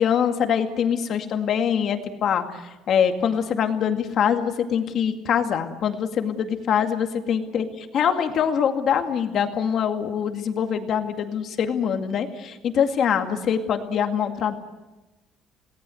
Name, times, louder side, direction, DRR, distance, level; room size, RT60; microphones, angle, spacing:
voice 1, 0.0-2.6 2.9-7.6 7.9-14.6, left 8 dB, 45° left, 6 dB, 2.2 m, -24 dB
28.0 x 18.5 x 7.8 m, 1.1 s
cardioid pair, 155°, 0 cm